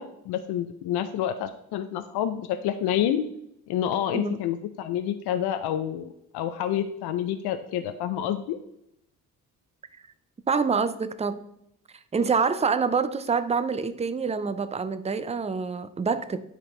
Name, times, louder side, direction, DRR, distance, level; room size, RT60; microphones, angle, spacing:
voice 1, 0.0-3.3 3.7-6.1 6.3-8.6, left 10 dB, 85° left, 10 dB, 0.5 m, -28 dB
voice 2, 10.5-11.4 12.1-16.4, right 5 dB, 15° right, 13 dB, 0.5 m, -26 dB
9.2 x 4.2 x 3.2 m, 0.78 s
cardioid pair, 65°, 38 cm